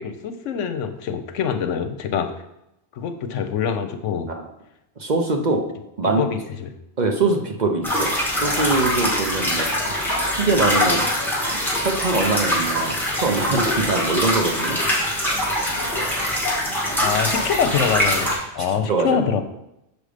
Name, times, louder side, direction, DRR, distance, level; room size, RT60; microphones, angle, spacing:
voice 1, 0.0-2.3 2.9-4.3 6.2-6.7 17.0-19.4, left 7 dB, 80° left, 9 dB, 1.0 m, -25 dB
voice 2, 5.0-5.6 6.0-6.2 7.0-8.1 8.4-9.7 10.4-11.0 11.8-14.8 18.6-19.2, right 3 dB, 40° right, 3 dB, 0.8 m, -23 dB
sound 1, 7.8-18.4, left 1 dB, ahead, 2.0 m, -23 dB
6.9 x 5.2 x 5.0 m, 0.86 s
omnidirectional pair, 1.3 m